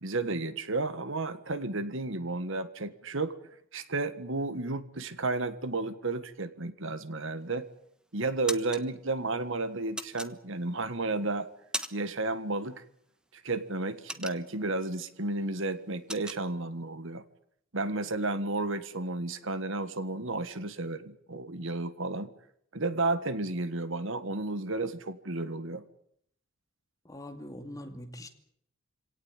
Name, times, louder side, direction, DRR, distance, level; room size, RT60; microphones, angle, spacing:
voice 1, 0.0-3.3 3.7-7.7 8.1-11.5 11.9-12.8 13.3-17.2 17.7-22.3 22.7-25.8, right 2 dB, 60° right, 12 dB, 1.6 m, -32 dB
sound 1, 7.4-7.9 8.2-8.8 10.0-10.8 11.3-12.2 12.5-12.7 13.1-14.8 15.2-15.4 15.6-16.4, right 1 dB, 5° right, 1.2 m, -38 dB
voice 2, 27.0-28.3, left 1 dB, 15° left, 5 dB, 2.5 m, -43 dB
27.0 x 17.5 x 9.1 m, 0.71 s
head